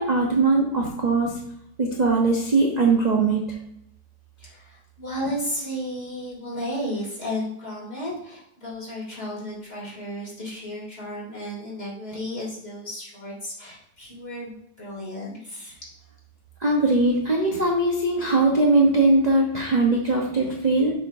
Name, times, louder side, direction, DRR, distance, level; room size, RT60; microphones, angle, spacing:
voice 1, 0.0-1.3 1.8-3.4 16.6-20.9, right 2 dB, 35° right, -1 dB, 0.7 m, -20 dB
voice 2, 4.4-15.7, equal, 35° left, -6 dB, 3.1 m, -33 dB
7.0 x 6.5 x 2.6 m, 0.76 s
omnidirectional pair, 1.9 m